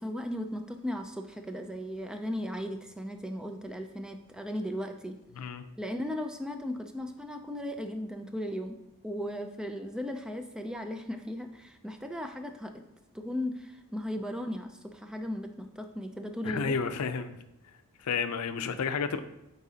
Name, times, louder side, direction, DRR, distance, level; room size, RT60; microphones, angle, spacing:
voice 1, 0.0-5.2 5.8-8.8 9.0-12.7 13.1-16.7, left 1 dB, 5° right, 0.3 m, -36 dB
voice 2, 5.3-5.6 16.4-17.4 18.0-19.2, left 5 dB, 85° left, 0.5 m, -31 dB
8.5 x 4.1 x 2.8 m
head